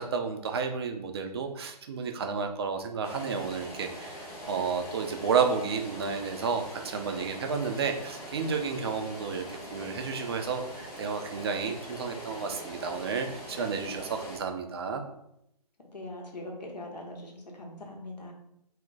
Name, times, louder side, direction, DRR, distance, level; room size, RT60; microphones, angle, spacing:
voice 1, 0.0-15.0, right 5 dB, 40° right, 5 dB, 0.4 m, -31 dB
sound 1, 3.0-14.4, equal, 10° left, 0.6 m, -42 dB
voice 2, 15.9-18.3, left 1 dB, 85° left, 0 dB, 0.9 m, -41 dB
2.4 x 2.1 x 3.8 m, 0.79 s
figure-of-eight pair, 135°, 21 cm